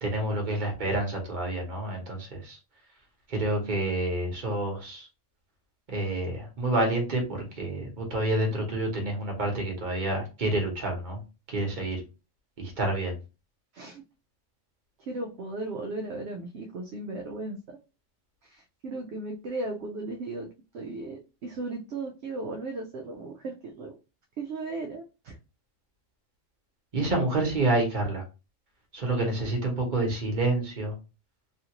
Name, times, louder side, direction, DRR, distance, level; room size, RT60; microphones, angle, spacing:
voice 1, 0.0-2.6 3.3-5.1 5.9-7.2 7.6-11.2 11.5-12.0 12.6-13.1 26.9-28.2 28.9-30.9, right 2 dB, 40° right, 1 dB, 1.1 m, -28 dB
voice 2, 15.1-17.6 18.4-20.5 20.7-23.9 24.4-25.4, right 2 dB, 65° right, 2 dB, 0.8 m, -36 dB
3.2 x 2.5 x 2.9 m, 0.30 s
omnidirectional pair, 1.4 m